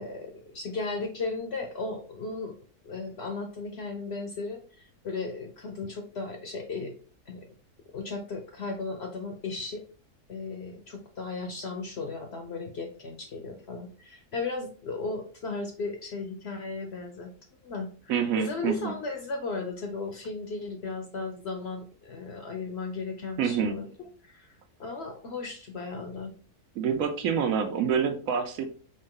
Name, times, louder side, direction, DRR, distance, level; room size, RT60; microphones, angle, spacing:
voice 1, 0.0-2.5 2.8-6.9 7.3-7.4 7.9-9.8 10.3-17.3 17.6-23.9 24.2-24.5 24.8-26.3, left 3 dB, 55° left, 3 dB, 0.8 m, -36 dB
voice 2, 18.1-18.9 23.4-23.8 26.8-28.7, right 7 dB, 70° right, 6 dB, 1.0 m, -27 dB
4.5 x 2.6 x 3.7 m, 0.41 s
omnidirectional pair, 1.6 m